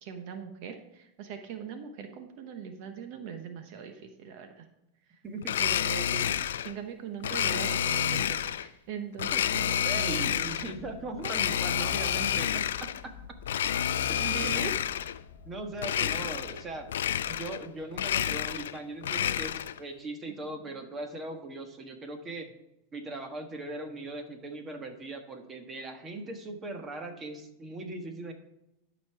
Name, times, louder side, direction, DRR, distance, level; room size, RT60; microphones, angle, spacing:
voice 1, 0.0-4.7 5.6-10.5 14.1-14.8, right 7 dB, 55° right, 6 dB, 1.0 m, -40 dB
Domestic sounds home sounds, 5.4-6.7 7.2-8.7 9.2-10.8 11.2-13.0 13.4-15.2 15.8-16.6 16.9-17.7 17.9-19.8, left 10 dB, 90° left, 0.4 m, -29 dB
sound 1, 9.2-18.0, left 6 dB, 65° left, 0.8 m, -51 dB
voice 2, 9.8-13.1 14.1-14.5 15.5-16.9 17.3-22.5 22.9-28.3, right 2 dB, 25° right, 5 dB, 1.4 m, -39 dB
12.0 x 5.3 x 4.7 m, 0.88 s
supercardioid pair, 125°, 0 cm